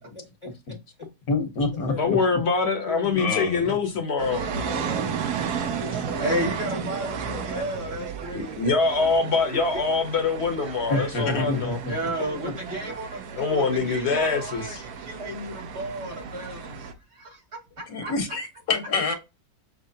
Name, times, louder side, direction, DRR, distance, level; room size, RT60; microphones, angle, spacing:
voice 1, 0.4-0.8 1.9-2.2 2.9-3.5 4.2-5.2 5.8-7.5 12.2-12.4 13.3-13.7 15.2-15.6 18.7-18.8, left 3 dB, 25° left, 0.8 m, -38 dB
voice 2, 1.3-2.4 3.1-3.6 10.9-11.9 17.9-19.1, left 3 dB, 65° left, 1.6 m, -27 dB
voice 3, 2.0-4.4 8.3-11.8 13.4-14.8, left 4 dB, 50° left, 1.0 m, -24 dB
sound 1, 4.2-16.9, right 7 dB, 85° right, 1.3 m, -34 dB
voice 4, 6.2-8.6 8.8-9.3 9.7-9.8 10.9-11.1 11.9-13.3 13.5-17.4 17.8-18.1, right 1 dB, 65° right, 2.9 m, -33 dB
6.3 x 2.9 x 2.7 m
omnidirectional pair, 1.7 m